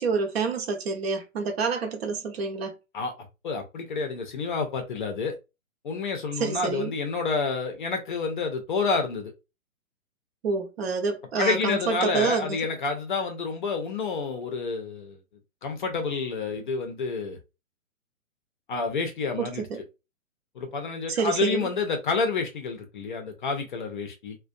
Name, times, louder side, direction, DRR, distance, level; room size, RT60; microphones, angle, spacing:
voice 1, 0.0-2.8 6.4-6.9 10.4-12.6 19.4-19.8 21.1-21.7, right 4 dB, 50° right, 0.7 m, -28 dB
voice 2, 3.4-5.3 5.8-9.3 11.4-15.2 15.6-17.4 18.7-19.7 20.5-24.4, left 4 dB, 40° left, 0.5 m, -29 dB
2.4 x 2.2 x 2.4 m
figure-of-eight pair, 130°, 41 cm